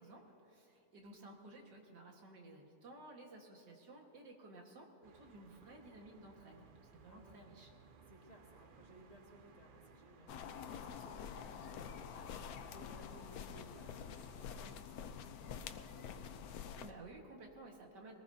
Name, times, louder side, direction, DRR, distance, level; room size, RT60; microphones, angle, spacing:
voice 1, 0.0-7.7 16.8-18.2, right 2 dB, 80° right, 1 dB, 2.3 m, -55 dB
sound 1, 5.0-14.8, right 5 dB, 60° right, 0.5 m, -63 dB
voice 2, 7.0-7.5 8.1-16.2, equal, 25° left, -2 dB, 1.7 m, -60 dB
sound 2, 10.3-16.9, left 7 dB, 70° left, 1.1 m, -47 dB
21.5 x 19.0 x 2.8 m, 2.6 s
omnidirectional pair, 1.8 m